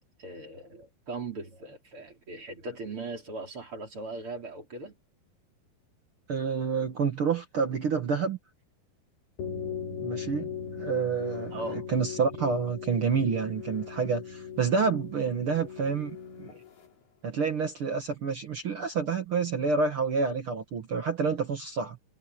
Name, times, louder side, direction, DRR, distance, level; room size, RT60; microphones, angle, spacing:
voice 1, 0.2-5.0 11.5-11.8, right 3 dB, 35° right, 4.6 m, -39 dB
voice 2, 6.3-8.4 10.0-10.5 10.8-16.5 17.2-22.0, right 5 dB, 65° right, 1.4 m, -28 dB
sound 1, 9.4-16.9, left 7 dB, 80° left, 7.1 m, -38 dB
omnidirectional pair, 4.5 m